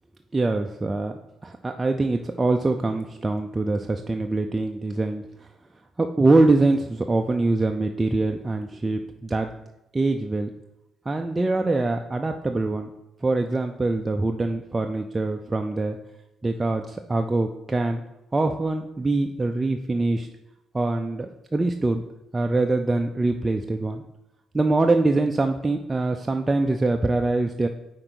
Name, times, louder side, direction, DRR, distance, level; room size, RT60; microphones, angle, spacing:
voice 1, 0.3-5.2 6.0-9.5 9.9-10.5 11.1-12.9 13.2-16.0 16.4-18.0 18.3-20.3 20.7-22.0 22.3-24.0 24.5-27.7, right 2 dB, 20° right, 4 dB, 0.4 m, -24 dB
5.0 x 4.5 x 6.1 m, 0.91 s
cardioid pair, 90°, 0 cm